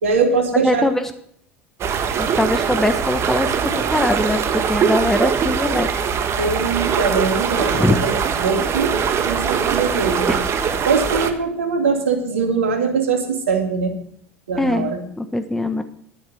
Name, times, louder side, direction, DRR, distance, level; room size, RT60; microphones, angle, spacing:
voice 1, 0.0-0.9 6.4-10.4 10.9-13.9 14.5-15.0, right 5 dB, 80° right, 4 dB, 2.2 m, -22 dB
voice 2, 0.6-1.0 2.0-3.5 3.9-4.4 4.7-5.9 7.7-8.0 10.3-10.4 14.6-15.8, left 1 dB, 5° left, 7 dB, 1.4 m, -21 dB
sound 1, 1.8-11.3, right 6 dB, 40° right, 1.5 m, -22 dB
11.5 x 10.0 x 5.9 m, 0.64 s
hypercardioid pair, 75°, 7 cm